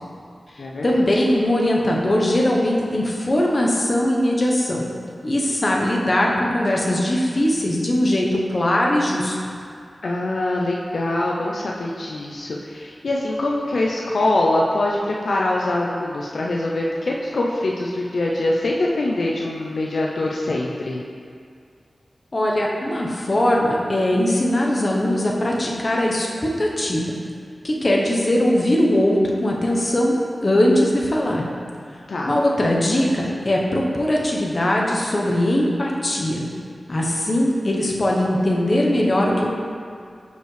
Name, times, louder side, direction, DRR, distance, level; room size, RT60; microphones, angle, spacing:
voice 1, 0.8-4.8 5.2-9.4 22.3-26.3 26.6-27.2 27.6-30.2 30.4-31.4 32.3-36.4 36.9-39.5, left 1 dB, 45° left, -2 dB, 0.9 m, -20 dB
voice 2, 10.0-21.0 32.1-32.4, left 2 dB, 80° left, -2 dB, 0.5 m, -23 dB
6.5 x 5.2 x 3.2 m, 2.2 s
wide cardioid pair, 60°, 0 cm